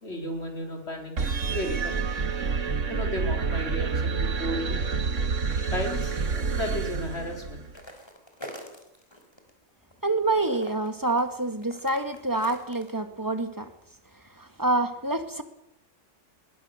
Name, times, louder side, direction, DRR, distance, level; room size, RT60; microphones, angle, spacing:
voice 1, 0.0-2.1 2.9-4.8 5.7-7.7, equal, 55° left, 3 dB, 4.3 m, -34 dB
sound 1, 1.2-7.8, right 5 dB, 70° right, 1.8 m, -28 dB
sound 2, 7.7-9.5 9.8-13.0, left 1 dB, 20° left, 3.8 m, -44 dB
voice 2, 10.0-13.7 14.4-15.4, right 2 dB, 15° right, 8 dB, 1.8 m, -27 dB
21.5 x 20.5 x 6.5 m, 0.83 s
omnidirectional pair, 1.4 m